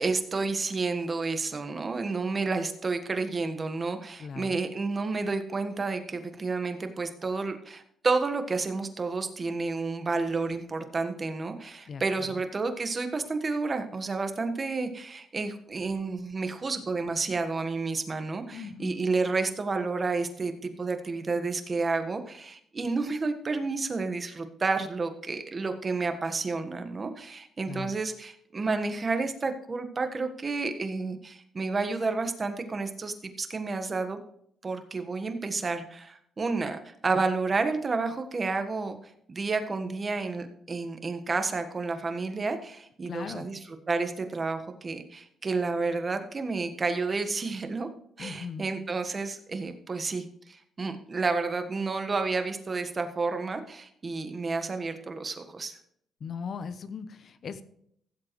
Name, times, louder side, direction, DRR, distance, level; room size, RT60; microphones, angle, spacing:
voice 1, 0.0-34.2 34.6-39.0 39.3-47.9 48.2-55.8, right 3 dB, 35° right, 7 dB, 1.4 m, -30 dB
voice 2, 4.2-4.6 11.9-12.0 18.5-19.0 27.7-27.9 43.1-43.5 48.2-48.7 56.2-57.6, left 6 dB, 55° left, 13 dB, 0.8 m, -38 dB
15.5 x 7.6 x 3.1 m, 0.67 s
cardioid pair, 90°, 0 cm